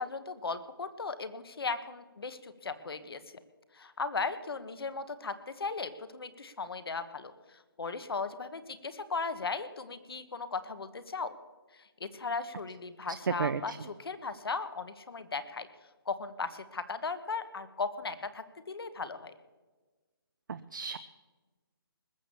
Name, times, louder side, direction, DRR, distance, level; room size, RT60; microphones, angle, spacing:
voice 1, 0.0-3.2 3.7-11.3 11.7-15.7 16.1-19.3, left 4 dB, 80° left, 12 dB, 1.3 m, -37 dB
voice 2, 13.4-13.8 20.5-21.0, right 6 dB, 55° right, 12 dB, 0.6 m, -34 dB
20.5 x 6.9 x 7.1 m, 1.3 s
hypercardioid pair, 170°, 12 cm